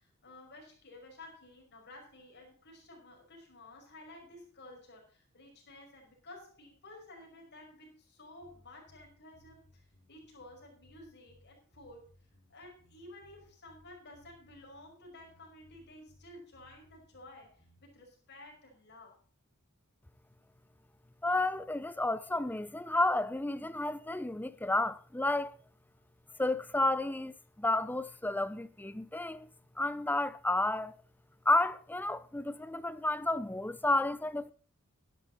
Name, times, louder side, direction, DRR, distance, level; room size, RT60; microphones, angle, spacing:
voice 1, 0.0-12.1 12.5-19.2, left 2 dB, 50° left, 5.4 m, -53 dB
sound 1, 8.4-18.0, equal, 35° left, 5.1 m, -64 dB
voice 2, 21.2-25.5 26.4-29.5 29.8-30.9 31.5-34.5, left 2 dB, 10° left, 0.5 m, -31 dB
12.5 x 11.5 x 4.0 m
head